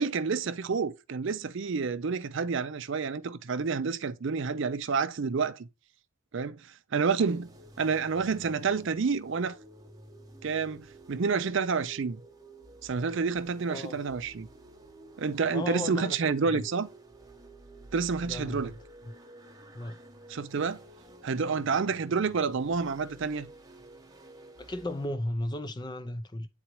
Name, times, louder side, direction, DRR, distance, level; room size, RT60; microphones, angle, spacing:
voice 1, 0.0-5.7 6.3-6.6 6.9-7.5 7.8-9.6 10.4-12.2 12.8-14.5 15.2-16.9 17.9-18.7 20.3-20.8 21.2-23.5, right 5 dB, 55° right, 0.5 m, -29 dB
sound 1, 7.3-25.1, right 1 dB, 15° right, 0.9 m, -51 dB
voice 2, 15.5-16.2 16.5-16.6 18.2-18.7 19.1-19.2 19.7-20.0 24.6-26.5, left 1 dB, 20° left, 0.5 m, -35 dB
8.9 x 4.0 x 2.9 m
head